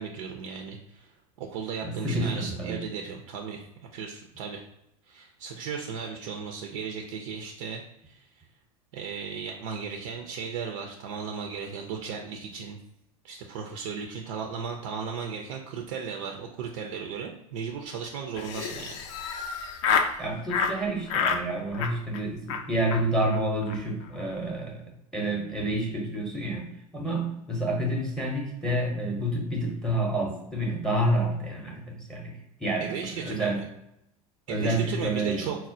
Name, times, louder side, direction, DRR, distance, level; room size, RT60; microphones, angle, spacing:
voice 1, 0.0-4.6 5.0-8.4 8.9-12.8 13.2-19.0 32.8-33.6 34.5-35.6, right 6 dB, 60° right, 2 dB, 0.4 m, -36 dB
voice 2, 1.8-2.8 20.2-24.8 25.1-32.3 32.6-33.6 34.5-35.5, right 1 dB, 5° left, 0 dB, 0.6 m, -29 dB
Laughter, 18.3-20.1 20.5-20.8 21.1-21.4 21.7-22.2 22.5-22.6 22.9-23.0 23.3-23.4 23.6-23.8 24.0-24.4, left 6 dB, 55° left, 0.4 m, -28 dB
4.2 x 2.0 x 2.5 m, 0.82 s
figure-of-eight pair, 80°, 19 cm